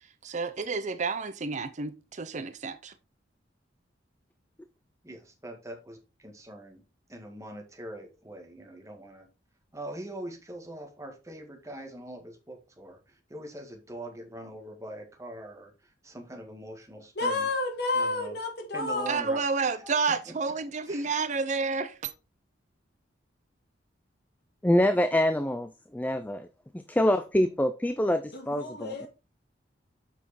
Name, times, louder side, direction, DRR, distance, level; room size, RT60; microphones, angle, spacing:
voice 1, 0.2-2.9 19.1-22.1, right 4 dB, 40° right, 0.6 m, -30 dB
voice 2, 5.0-6.8 7.1-9.3 9.7-17.5 17.9-18.4 18.7-19.4 19.8-20.0 20.3-20.4 20.9-21.1, right 1 dB, 15° right, 1.7 m, -43 dB
voice 3, 17.2-19.2 28.3-29.1, left 2 dB, 60° left, 2.3 m, -30 dB
voice 4, 24.6-26.5 26.7-29.1, left 1 dB, 10° left, 0.4 m, -26 dB
7.2 x 6.0 x 4.2 m
head